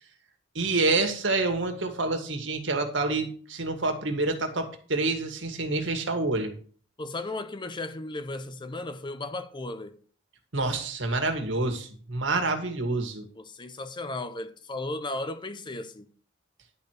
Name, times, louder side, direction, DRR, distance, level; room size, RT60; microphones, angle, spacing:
voice 1, 0.6-6.5 10.5-13.3, right 3 dB, 75° right, 1.9 m, -27 dB
voice 2, 7.0-10.0 13.4-16.1, left 2 dB, 25° left, 0.7 m, -35 dB
11.0 x 4.6 x 6.5 m
head